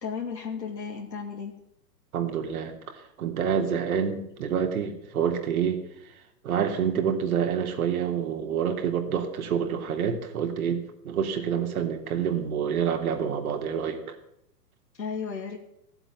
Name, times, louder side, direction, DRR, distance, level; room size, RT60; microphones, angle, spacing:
voice 1, 0.0-1.6 15.0-15.6, left 6 dB, 85° left, -2 dB, 2.8 m, -34 dB
voice 2, 2.1-2.7 3.2-5.8 6.4-14.2, right 7 dB, 60° right, 4 dB, 3.2 m, -27 dB
15.5 x 8.0 x 9.6 m, 0.75 s
hypercardioid pair, 125°, 49 cm